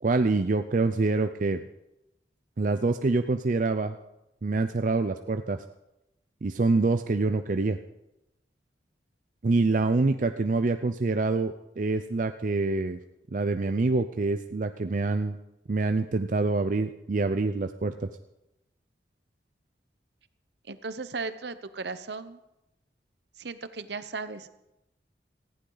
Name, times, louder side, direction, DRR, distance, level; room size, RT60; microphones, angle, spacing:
voice 1, 0.0-1.6 2.6-4.0 4.4-5.6 6.4-7.8 9.4-13.0 13.3-15.4 15.7-18.1, right 3 dB, 45° right, 8 dB, 0.5 m, -26 dB
voice 2, 20.7-22.4 23.4-24.5, right 4 dB, 70° right, 12 dB, 0.9 m, -36 dB
18.5 x 14.5 x 4.0 m, 0.91 s
head